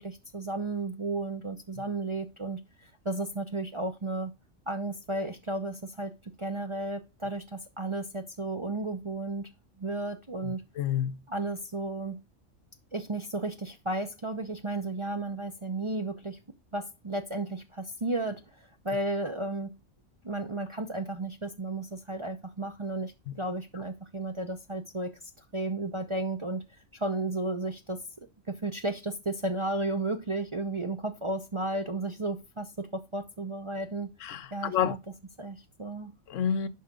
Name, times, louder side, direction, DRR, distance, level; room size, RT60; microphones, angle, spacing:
voice 1, 0.0-4.3 4.7-6.1 6.4-9.5 9.8-10.6 11.3-12.2 12.9-16.4 16.7-18.4 18.8-19.7 20.2-25.1 25.5-26.6 26.9-28.0 28.5-34.1 34.5-35.0 35.4-36.1, right 2 dB, 30° right, 0.6 m, -33 dB
voice 2, 10.4-11.2 23.3-23.4 34.2-35.0 36.3-36.7, left 9 dB, 75° left, 1.0 m, -29 dB
11.0 x 4.3 x 3.7 m
omnidirectional pair, 1.4 m